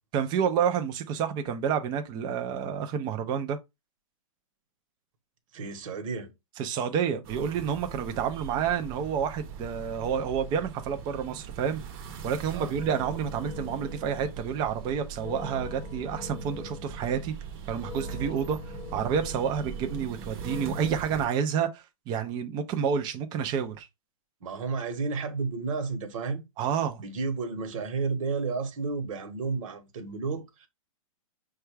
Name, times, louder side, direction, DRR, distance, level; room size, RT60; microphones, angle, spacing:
voice 1, 0.1-3.6 6.6-11.8 12.2-17.3 17.7-23.9 26.6-27.0, right 7 dB, 25° right, 0.5 m, -29 dB
voice 2, 5.5-6.3 12.5-12.8 24.4-26.4 27.0-30.7, right 4 dB, 65° right, 1.1 m, -32 dB
sound 1, 7.2-21.3, right 7 dB, 40° right, 0.9 m, -41 dB
sound 2, 12.8-21.0, left 4 dB, 30° left, 0.8 m, -43 dB
5.4 x 2.3 x 3.2 m
hypercardioid pair, 145°, 18 cm